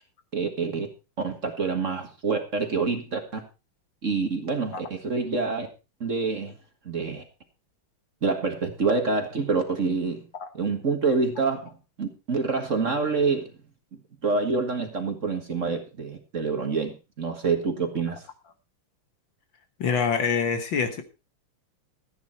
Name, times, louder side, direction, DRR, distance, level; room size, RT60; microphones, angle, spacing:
voice 1, 0.3-0.9 1.2-3.4 4.0-5.7 6.0-6.5 6.9-7.2 8.2-10.2 10.5-11.7 12.0-13.5 14.2-18.2, right 4 dB, 35° right, 1.8 m, -27 dB
voice 2, 19.8-21.0, left 6 dB, 60° left, 1.9 m, -25 dB
14.5 x 9.5 x 4.3 m
omnidirectional pair, 2.4 m